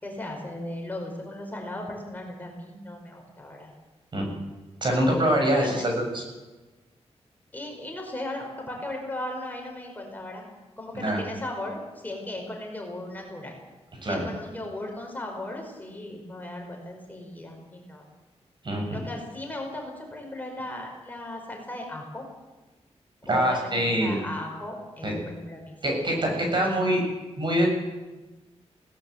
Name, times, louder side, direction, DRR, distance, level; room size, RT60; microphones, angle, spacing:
voice 1, 0.0-3.7 4.9-5.3 5.6-5.7 7.5-10.5 10.8-13.6 14.1-18.0 18.9-22.2 23.3-26.5 26.8-26.9, left 1 dB, 15° left, 1 dB, 5.1 m, -37 dB
voice 2, 4.8-6.2 10.9-11.2 14.0-14.2 18.6-18.9 23.3-24.2 25.0-25.1 25.8-27.0 27.4-27.8, equal, 45° right, 1 dB, 6.9 m, -24 dB
20.5 x 18.0 x 8.0 m, 1.2 s
wide cardioid pair, 125°, 11 cm